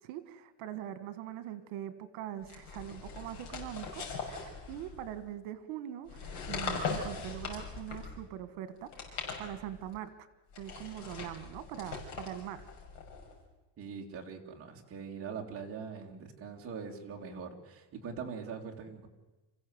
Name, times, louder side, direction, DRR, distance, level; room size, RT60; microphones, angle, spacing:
voice 1, 0.0-10.3 10.6-12.7, right 11 dB, 75° right, 12 dB, 1.8 m, -42 dB
sound 1, 2.4-5.2 6.0-8.3 8.8-9.9 10.5-13.4, left 5 dB, 65° left, 6.2 m, -41 dB
voice 2, 13.8-19.1, right 6 dB, 25° right, 0 dB, 2.6 m, -42 dB
26.5 x 15.5 x 8.0 m, 1.1 s
cardioid pair, 175°, 49 cm